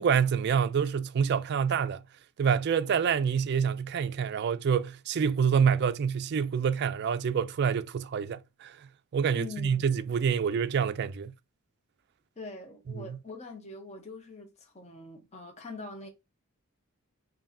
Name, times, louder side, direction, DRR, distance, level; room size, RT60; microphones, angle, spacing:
voice 1, 0.0-2.0 2.4-11.3 12.9-13.2, right 7 dB, 50° right, 0.3 m, -27 dB
voice 2, 9.3-9.9 12.4-16.1, left 3 dB, 30° left, 0.8 m, -43 dB
5.3 x 2.7 x 2.6 m
head